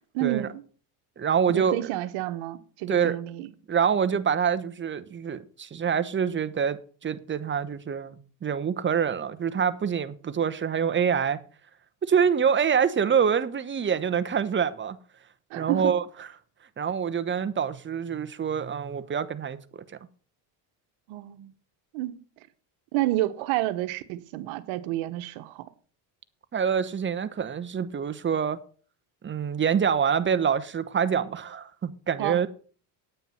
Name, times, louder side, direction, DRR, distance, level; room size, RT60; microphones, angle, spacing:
voice 1, 0.1-0.6 1.5-3.5 15.5-15.9 21.1-21.5 21.9-22.2 22.9-25.7 32.2-32.5, right 15 dB, 75° right, 1.2 m, -29 dB
voice 2, 1.2-1.9 2.9-3.2 3.7-11.4 12.1-15.0 15.6-16.3 16.8-19.8 26.5-28.6 29.2-32.5, right 7 dB, 25° right, 0.9 m, -26 dB
9.3 x 9.1 x 5.6 m
cardioid pair, 115°, 49 cm